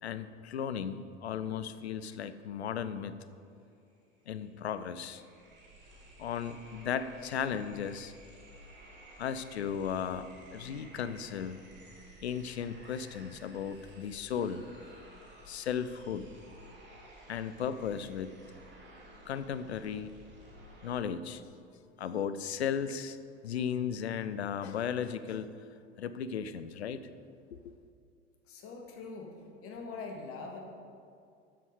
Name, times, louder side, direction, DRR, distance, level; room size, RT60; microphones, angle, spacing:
voice 1, 0.0-3.1 4.3-5.2 6.2-8.1 9.2-11.6 12.2-14.6 15.5-16.3 17.3-18.4 19.2-20.1 20.8-21.4 22.0-23.2 23.4-25.5 26.0-27.0, left 8 dB, 70° left, 13 dB, 0.6 m, -35 dB
sound 1, 3.9-4.0 4.3-20.9, right 1 dB, 35° right, 3.2 m, -54 dB
voice 2, 28.5-30.6, left 4 dB, 40° left, 2 dB, 2.1 m, -43 dB
12.5 x 8.0 x 4.9 m, 2.4 s
figure-of-eight pair, 75°, 34 cm